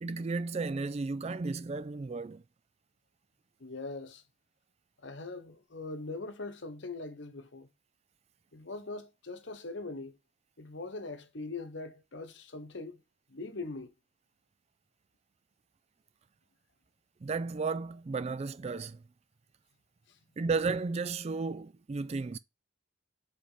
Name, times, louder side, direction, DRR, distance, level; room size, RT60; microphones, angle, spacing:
voice 1, 0.0-2.4 17.2-19.0 20.4-22.4, right 4 dB, 30° right, 0.3 m, -33 dB
voice 2, 3.6-4.2 5.0-7.7 8.5-10.2 10.6-13.0 13.3-13.9, left 3 dB, 60° left, 1.0 m, -41 dB
5.1 x 4.3 x 4.9 m
head